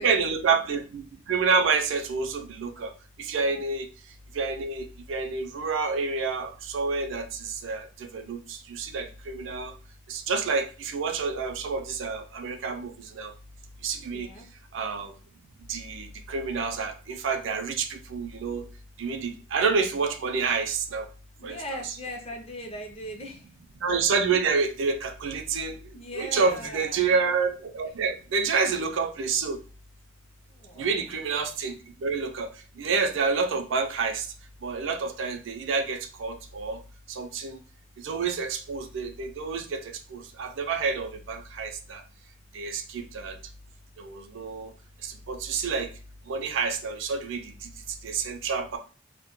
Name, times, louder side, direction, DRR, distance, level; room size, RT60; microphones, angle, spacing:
voice 1, 0.0-2.9 3.2-3.9 4.3-9.7 10.1-13.3 13.8-14.3 14.7-15.1 15.7-18.6 19.0-21.1 21.4-21.6 21.8-21.9 23.8-25.8 26.1-29.6 30.8-31.7 32.0-32.5 32.8-34.3 34.6-36.8 37.1-37.6 38.0-42.0 42.5-43.4 44.0-44.7 45.0-45.9 46.3-47.5 48.0-48.8, right 5 dB, 70° right, 6 dB, 0.4 m, -28 dB
voice 2, 14.1-14.5 21.4-23.5 25.9-27.0 30.5-30.9, left 1 dB, 30° left, 2 dB, 0.4 m, -39 dB
2.1 x 2.1 x 2.9 m, 0.36 s
head